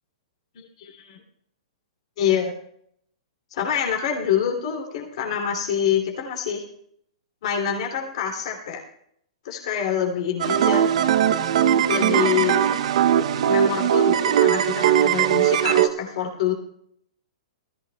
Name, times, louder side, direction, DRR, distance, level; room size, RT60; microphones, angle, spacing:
voice 1, 0.5-1.2 2.2-2.5 3.5-6.6 7.4-8.8 9.4-10.9 11.9-12.7 13.4-16.5, left 8 dB, 55° left, 0 dB, 2.6 m, -26 dB
sound 1, 10.4-15.9, right 10 dB, 65° right, 0.7 m, -19 dB
19.0 x 14.0 x 2.2 m, 0.69 s
hypercardioid pair, 150°, 4 cm